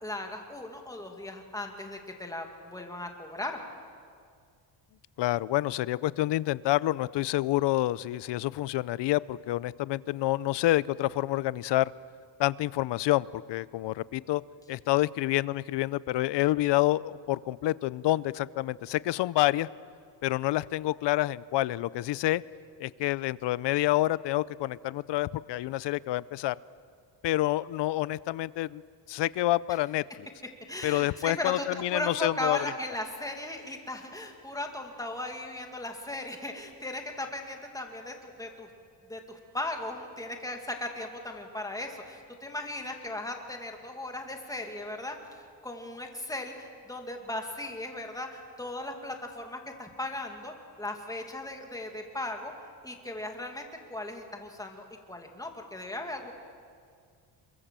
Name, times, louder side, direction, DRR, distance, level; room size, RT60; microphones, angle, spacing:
voice 1, 0.0-3.6 30.7-31.6 31.9-38.7 39.1-45.2 45.6-52.5 52.8-56.3, left 1 dB, 10° left, 3 dB, 2.3 m, -37 dB
voice 2, 5.2-11.9 12.4-14.4 14.7-19.7 20.2-22.4 22.8-26.6 27.2-28.8 29.1-30.0 30.8-32.6, left 16 dB, 70° left, 20 dB, 0.6 m, -28 dB
27.5 x 22.5 x 7.5 m, 2.2 s
cardioid pair, 170°, 43 cm